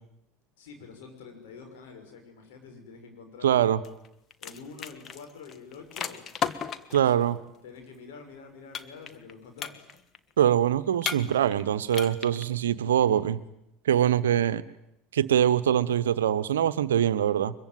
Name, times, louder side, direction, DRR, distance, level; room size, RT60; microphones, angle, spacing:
voice 1, 0.6-3.8 4.4-6.3 6.6-9.9, left 5 dB, 70° left, 4 dB, 6.3 m, -47 dB
voice 2, 3.4-3.8 6.9-7.4 10.4-13.4 13.8-14.6 15.1-17.5, right 10 dB, 80° right, 14 dB, 1.0 m, -23 dB
sound 1, 3.8-4.1 4.3-7.1 8.7-9.3 9.6-10.2 11.0-11.6 11.9-12.4, left 7 dB, 40° left, 1.6 m, -34 dB
24.0 x 22.5 x 9.4 m, 0.82 s
hypercardioid pair, 75°, 0 cm